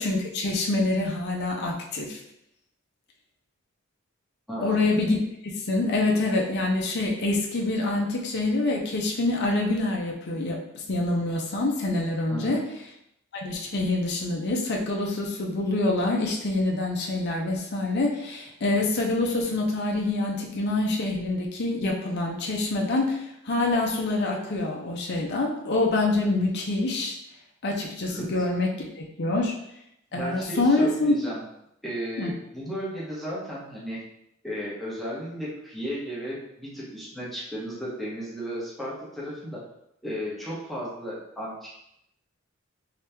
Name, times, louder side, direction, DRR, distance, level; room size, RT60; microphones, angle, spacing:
voice 1, 0.0-2.2 4.6-5.2 5.4-12.6 13.3-27.1 27.6-29.5 30.1-31.1 32.2-32.3, left 2 dB, 55° left, 0 dB, 0.6 m, -26 dB
voice 2, 4.5-4.8 12.3-12.6 28.1-28.3 30.1-31.4 31.8-34.0 34.4-39.6 40.0-41.8, equal, ahead, -7 dB, 1.0 m, -34 dB
2.9 x 2.8 x 3.4 m, 0.78 s
head